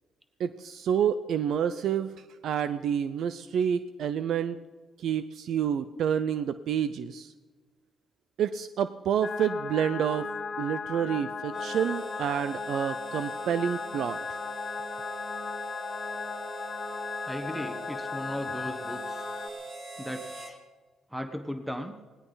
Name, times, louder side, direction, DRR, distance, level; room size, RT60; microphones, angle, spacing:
voice 1, 0.4-2.1 2.4-4.6 5.0-7.3 8.4-10.3 10.6-14.4, right 8 dB, 70° right, 12 dB, 0.6 m, -28 dB
sound 1, 9.2-19.5, left 5 dB, 40° left, 1.5 m, -36 dB
Harmonica, 11.5-20.6, right 4 dB, 55° right, 3.6 m, -43 dB
voice 2, 17.3-19.2 20.0-20.6 21.1-22.0, equal, 5° right, 6 dB, 1.3 m, -37 dB
18.5 x 17.5 x 4.0 m, 1.3 s
cardioid pair, 90°, 0 cm